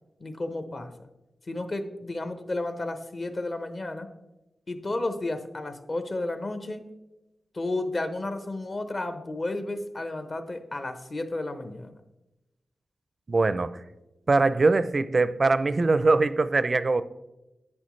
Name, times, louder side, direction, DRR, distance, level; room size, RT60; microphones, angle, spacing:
voice 1, 0.2-1.1 1.5-4.1 4.7-6.9 7.5-11.9, left 2 dB, 40° left, 9 dB, 0.9 m, -32 dB
voice 2, 13.3-13.8 14.3-17.0, right 3 dB, 40° right, 14 dB, 0.4 m, -22 dB
10.5 x 9.0 x 3.2 m, 0.96 s
wide cardioid pair, 115°, 0 cm